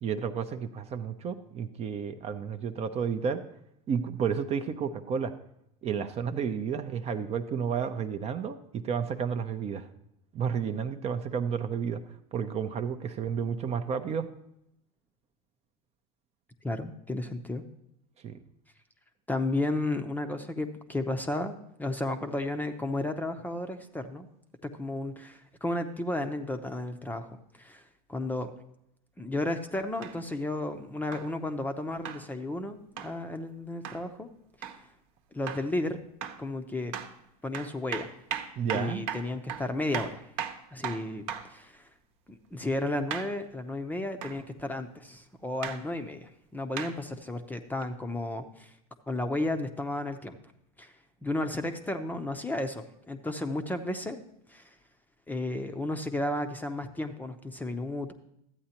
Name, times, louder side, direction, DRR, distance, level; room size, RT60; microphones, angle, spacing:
voice 1, 0.0-3.4 3.9-5.3 5.8-9.9 10.3-14.3 18.2-18.4 38.6-39.0, right 7 dB, 30° right, 8 dB, 0.6 m, -31 dB
voice 2, 16.6-17.6 19.3-24.3 24.6-27.8 28.1-28.5 29.2-34.3 35.3-36.0 36.4-36.9 37.4-38.1 38.7-40.2 40.7-41.2 41.5-41.9 42.3-48.7 49.1-50.4 50.8-50.9 51.2-54.2 54.5-54.7 55.3-58.1, left 2 dB, 10° left, 7 dB, 0.6 m, -33 dB
sound 1, 30.0-30.2 31.1-31.3 32.0-32.2 33.0-33.2 33.8-34.0 34.6-34.8 35.5-35.7 36.2-36.5 36.9-37.1 37.5-41.6 43.1-43.3 44.2-44.4 45.6-45.8 46.8-47.0 47.8-47.9, right 8 dB, 60° right, 1.0 m, -37 dB
13.0 x 8.7 x 2.9 m, 0.77 s
hypercardioid pair, 110°, 20 cm